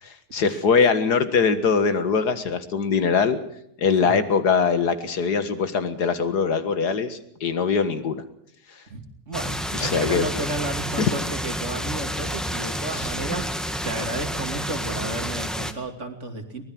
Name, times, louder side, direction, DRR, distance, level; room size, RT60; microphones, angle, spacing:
voice 1, 0.0-3.4 3.8-8.2 9.7-10.3 11.0-11.1 12.9-13.1, left 5 dB, 80° left, 10 dB, 2.3 m, -22 dB
voice 2, 8.9-16.6, right 2 dB, 45° right, 6 dB, 3.0 m, -33 dB
sound 1, 9.3-15.7, equal, ahead, 1.6 m, -29 dB
24.0 x 19.5 x 6.1 m, 0.77 s
omnidirectional pair, 1.7 m